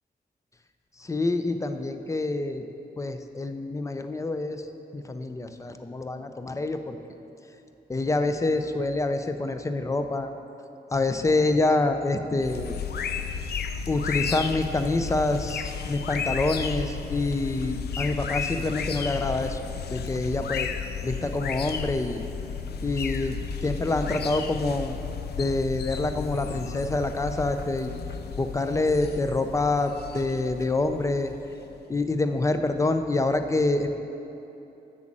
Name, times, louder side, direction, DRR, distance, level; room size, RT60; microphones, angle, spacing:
voice 1, 1.0-2.6 3.0-4.7 4.9-7.0 7.9-10.3 10.9-12.7 13.9-19.6 19.9-20.7 21.0-22.2 22.8-25.0 25.4-27.9 28.4-31.3 31.9-33.9, left 2 dB, 20° left, 8 dB, 0.4 m, -26 dB
sound 1, 12.4-31.8, left 6 dB, 80° left, 0.4 m, -33 dB
8.0 x 6.2 x 7.3 m, 3.0 s
wide cardioid pair, 180°, 17 cm